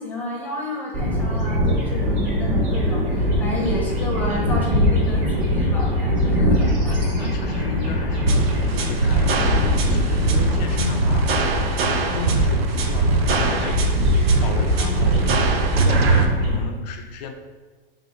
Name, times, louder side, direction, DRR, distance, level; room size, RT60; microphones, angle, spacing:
voice 1, 0.0-7.1, equal, 5° left, -3 dB, 0.7 m, -30 dB
sound 1, 0.9-16.6, equal, 35° right, 1.3 m, -22 dB
voice 2, 6.9-11.4 11.8-17.3, left 4 dB, 45° left, 6 dB, 0.5 m, -33 dB
sound 2, 8.3-16.3, right 3 dB, 85° right, 0.6 m, -22 dB
3.6 x 2.6 x 4.1 m, 1.3 s
hypercardioid pair, 135°, 30 cm